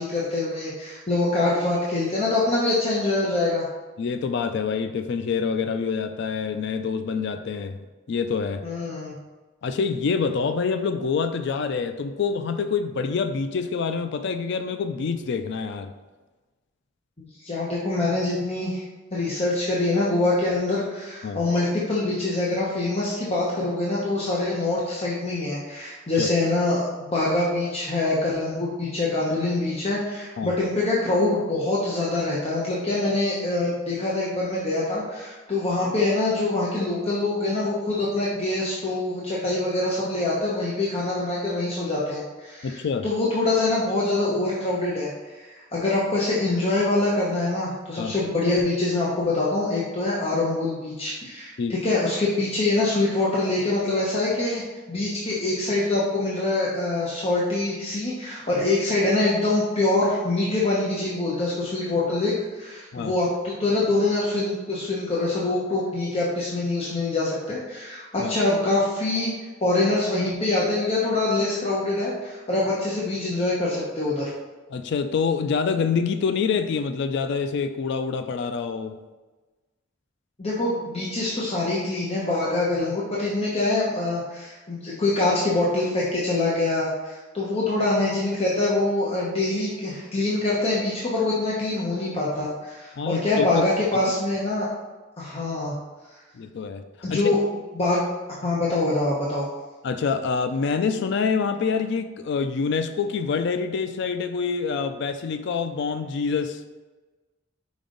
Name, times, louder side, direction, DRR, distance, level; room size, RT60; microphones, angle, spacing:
voice 1, 0.0-3.6 8.6-9.1 17.4-18.8 19.1-45.1 45.4-54.6 54.9-69.3 69.6-74.3 80.4-94.7 95.2-95.8 97.0-97.4 97.7-98.0 98.4-99.5, left 2 dB, 30° left, -6 dB, 0.9 m, -24 dB
voice 2, 4.0-7.7 8.1-8.6 9.6-15.9 21.2-21.4 26.2-26.3 30.4-30.5 42.6-43.1 48.0-48.1 51.6-51.7 62.9-63.1 68.2-68.3 74.7-79.0 93.0-93.6 96.3-96.8 97.1-97.4 99.8-106.6, left 5 dB, 60° left, 9 dB, 0.4 m, -26 dB
5.2 x 5.1 x 3.8 m, 1.2 s
head